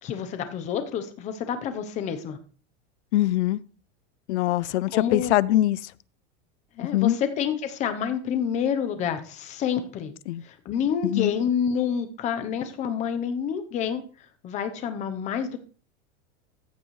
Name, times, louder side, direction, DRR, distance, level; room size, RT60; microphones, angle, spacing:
voice 1, 0.0-2.4 4.9-5.3 6.8-10.1 10.4-14.0 14.4-15.6, left 8 dB, 20° left, 0.8 m, -28 dB
voice 2, 3.1-3.6 4.3-5.9 6.9-7.2 10.3-10.4 11.0-11.3, left 15 dB, 75° left, 0.5 m, -23 dB
14.5 x 7.7 x 3.2 m
supercardioid pair, 170°, 35 cm